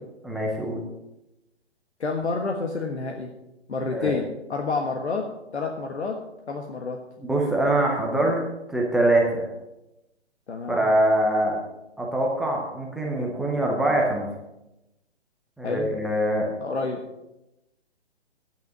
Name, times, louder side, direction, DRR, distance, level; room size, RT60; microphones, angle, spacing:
voice 1, 0.2-0.8 3.9-4.1 7.2-8.4 8.7-9.5 10.7-11.5 12.0-14.3 15.6-16.5, right 1 dB, ahead, -2 dB, 0.5 m, -23 dB
voice 2, 2.0-3.3 3.7-5.2 5.5-6.2 6.5-7.0 10.5-10.9 15.6-15.9 16.6-17.0, left 4 dB, 75° left, 2 dB, 1.5 m, -29 dB
10.5 x 9.4 x 5.9 m, 0.94 s
figure-of-eight pair, 135°, 34 cm